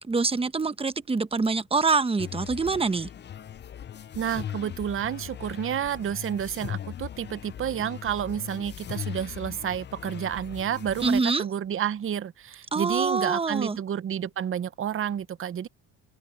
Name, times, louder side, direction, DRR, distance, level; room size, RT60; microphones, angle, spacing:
voice 1, 0.1-3.1 11.0-11.4 12.7-13.8, right 4 dB, 15° right, 1.1 m, -25 dB
sound 1, 2.2-11.2, left 10 dB, 30° left, 0.6 m, -39 dB
voice 2, 4.1-15.7, right 9 dB, 40° right, 0.8 m, -30 dB
open air
cardioid pair, 100°, 34 cm